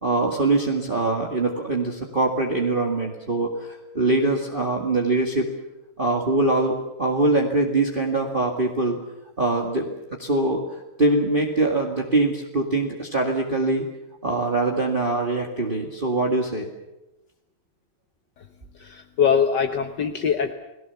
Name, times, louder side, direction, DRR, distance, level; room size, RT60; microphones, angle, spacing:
voice 1, 0.0-5.5 6.0-9.0 9.4-9.9 10.2-13.9 14.2-16.7, right 2 dB, 25° right, 1 dB, 2.1 m, -23 dB
voice 2, 18.8-20.5, left 7 dB, 60° left, 6 dB, 1.7 m, -22 dB
30.0 x 18.5 x 7.1 m, 0.98 s
omnidirectional pair, 2.2 m